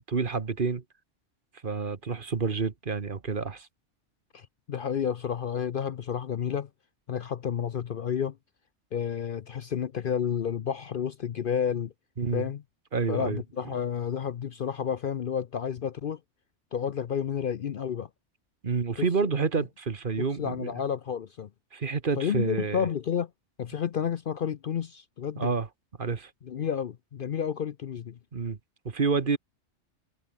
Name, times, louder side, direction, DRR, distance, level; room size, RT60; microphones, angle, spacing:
voice 1, 0.1-0.8 1.6-3.7 12.2-12.5 12.9-13.7 18.6-20.7 21.7-22.9 25.4-25.7 26.0-26.3 28.3-28.6 28.8-29.4, right 5 dB, 45° right, 1.4 m, -29 dB
voice 2, 4.3-6.7 7.1-8.4 8.9-11.9 12.3-12.6 13.1-16.2 16.7-18.1 19.0-19.1 20.2-21.5 22.2-23.3 23.6-25.5 26.4-28.2, left 8 dB, 55° left, 0.7 m, -31 dB
omnidirectional pair, 1.2 m